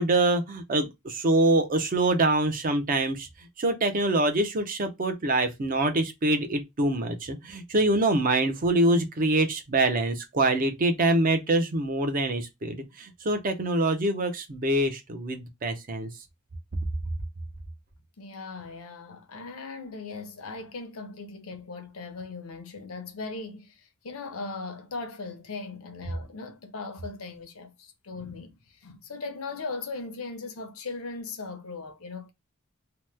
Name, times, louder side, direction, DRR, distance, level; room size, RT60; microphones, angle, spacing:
voice 1, 0.0-3.3 3.6-16.1, right 2 dB, 40° right, 0.5 m, -25 dB
voice 2, 18.2-32.3, left 3 dB, 75° left, 0.6 m, -38 dB
2.9 x 2.1 x 3.2 m
head